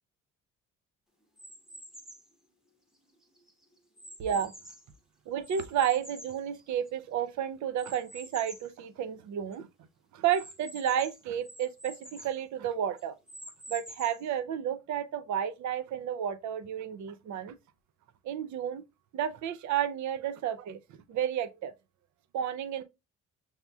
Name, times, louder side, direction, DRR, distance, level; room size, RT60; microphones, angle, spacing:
sound 1, 1.4-2.3 2.9-5.0 5.4-7.1 7.8-8.7 9.2-9.3 9.5-9.6 10.3-12.4 13.0-14.3, equal, ahead, 0.8 m, -48 dB
voice 1, 4.2-4.5 5.3-9.7 10.1-13.1 13.7-17.5 18.2-18.8 19.1-21.7 22.3-22.8, right 9 dB, 70° right, 0.5 m, -32 dB
6.0 x 2.8 x 2.2 m
cardioid pair, 90°, 30 cm